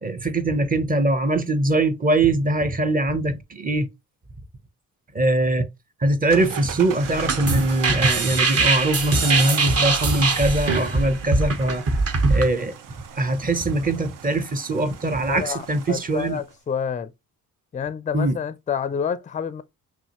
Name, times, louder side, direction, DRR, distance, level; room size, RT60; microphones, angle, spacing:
voice 1, 0.0-3.9 5.1-5.7 6.0-11.8 12.3-12.7 13.2-16.4 18.1-18.4, right 2 dB, 25° right, 0.7 m, -22 dB
sound 1, 6.3-16.5, right 7 dB, 70° right, 0.7 m, -38 dB
sound 2, 7.0-12.5, right 3 dB, 45° right, 1.1 m, -22 dB
voice 2, 15.3-17.1 17.7-19.6, left 7 dB, 25° left, 0.4 m, -28 dB
5.6 x 2.5 x 2.8 m
cardioid pair, 90°, 33 cm